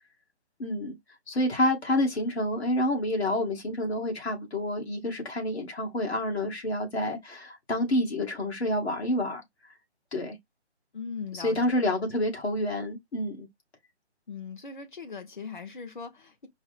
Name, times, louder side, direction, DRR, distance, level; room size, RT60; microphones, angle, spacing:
voice 1, 0.6-0.9 1.3-9.4 10.1-10.3 11.4-13.5, left 1 dB, 65° left, 2.0 m, -28 dB
voice 2, 10.9-11.6 14.3-16.5, left 5 dB, 45° left, 1.1 m, -39 dB
4.6 x 2.1 x 4.1 m
hypercardioid pair, 175°, 35 cm